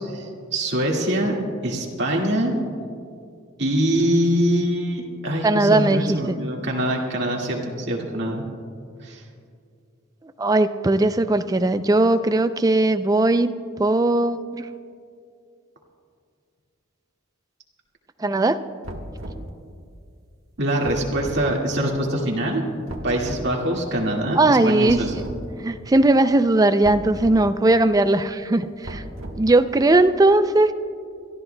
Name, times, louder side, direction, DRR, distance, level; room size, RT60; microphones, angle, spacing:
voice 1, 0.0-1.4 1.6-2.6 3.6-8.4 9.0-9.2 20.6-22.6 23.0-25.1, right 1 dB, 60° right, -1 dB, 1.9 m, -24 dB
voice 2, 5.4-6.4 10.4-13.5 13.8-14.7 18.2-18.6 24.4-25.2 25.6-29.0 29.4-30.7, right 2 dB, 20° right, 10 dB, 0.4 m, -19 dB
sound 1, 18.8-19.5 20.8-21.4 22.9-23.4 24.9-25.4 26.8-27.4 28.8-29.6, right 1 dB, 75° right, 1.3 m, -35 dB
29.5 x 13.5 x 2.2 m, 2.3 s
head